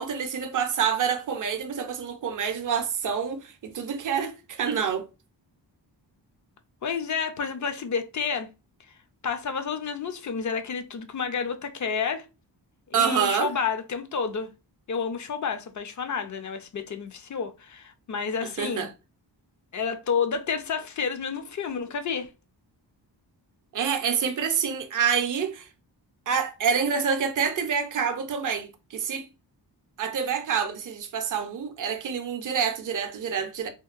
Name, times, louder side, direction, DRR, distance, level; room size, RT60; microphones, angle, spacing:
voice 1, 0.0-5.1 12.9-13.5 18.4-18.9 23.7-25.7 26.3-29.3 30.0-33.7, right 7 dB, 45° right, 0.5 m, -27 dB
voice 2, 6.8-8.5 9.2-12.2 12.9-14.5 14.9-18.9 19.7-22.3, left 6 dB, 45° left, 0.4 m, -30 dB
2.8 x 2.2 x 2.4 m
wide cardioid pair, 90°, 43 cm